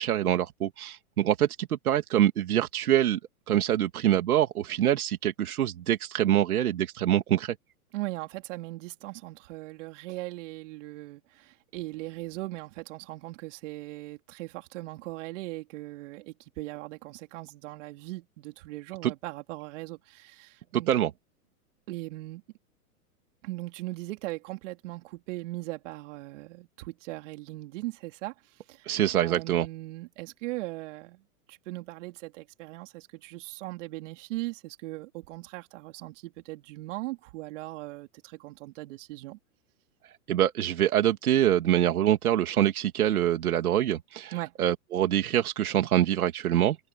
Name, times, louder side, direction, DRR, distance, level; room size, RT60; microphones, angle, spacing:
voice 1, 0.0-3.2 3.5-7.5 19.0-19.1 20.7-21.1 28.9-29.7 40.3-44.3 44.6-46.8, right 11 dB, 75° right, 2.1 m, -25 dB
voice 2, 7.9-20.9 21.9-22.4 23.4-28.3 28.7-31.2 31.5-39.4 44.3-44.5, right 19 dB, 55° right, 3.9 m, -39 dB
hypercardioid pair, 125°, 44 cm